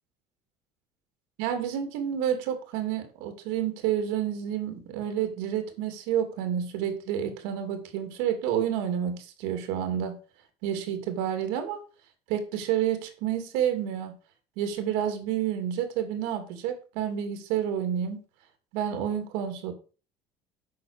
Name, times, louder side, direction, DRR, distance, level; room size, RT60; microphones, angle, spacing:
voice 1, 1.4-10.2 10.6-11.8 12.3-14.1 14.6-18.2 18.7-19.7, right 9 dB, 80° right, 7 dB, 2.6 m, -29 dB
8.5 x 6.0 x 6.7 m, 0.36 s
cardioid pair, 165°, 10 cm